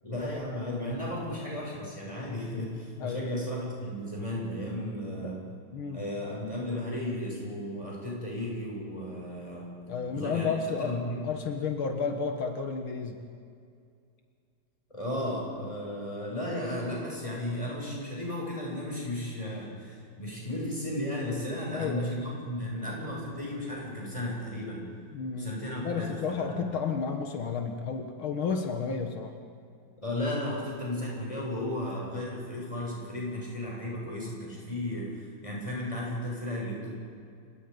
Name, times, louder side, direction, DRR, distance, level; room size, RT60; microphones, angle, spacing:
voice 1, 0.0-5.4 5.9-9.7 10.1-10.5 10.8-11.2 14.9-24.8 25.4-26.7 30.0-36.9, left 1 dB, 15° left, -3 dB, 6.9 m, -34 dB
voice 2, 5.7-6.1 9.9-13.2 21.7-22.2 25.1-25.5 25.8-29.4, left 5 dB, 85° left, 5 dB, 2.3 m, -32 dB
29.5 x 18.0 x 5.4 m, 2.3 s
omnidirectional pair, 2.2 m